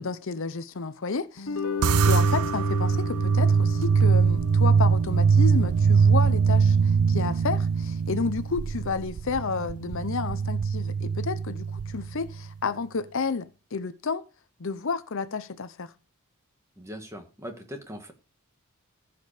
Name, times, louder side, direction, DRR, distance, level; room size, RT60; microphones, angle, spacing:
voice 1, 0.0-1.5 2.0-14.3 14.6-15.9, left 4 dB, 60° left, 0.7 m, -31 dB
sound 1, 1.4-7.9, left 5 dB, 80° left, 1.0 m, -36 dB
sound 2, 1.8-12.4, right 5 dB, 75° right, 0.4 m, -22 dB
voice 2, 16.8-18.1, equal, 15° right, 1.6 m, -40 dB
15.0 x 5.1 x 5.0 m
head